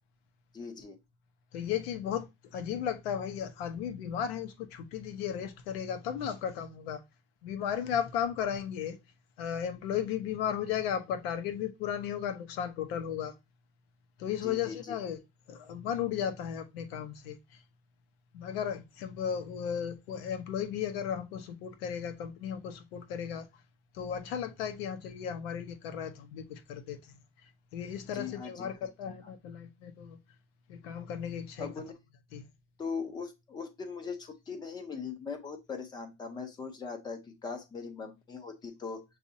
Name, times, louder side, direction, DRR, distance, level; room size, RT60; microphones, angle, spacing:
voice 1, 0.5-1.0 14.4-15.0 28.1-28.7 29.2-29.3 31.6-31.9 32.8-39.0, left 5 dB, 15° left, 0.5 m, -40 dB
voice 2, 1.5-7.0 7.4-9.0 9.4-13.3 14.2-15.2 15.5-17.6 18.3-23.5 23.9-27.1 27.4-30.2 30.7-31.7 32.3-32.5, left 8 dB, 70° left, 1.0 m, -35 dB
7.2 x 2.7 x 2.7 m
supercardioid pair, 170°, 32 cm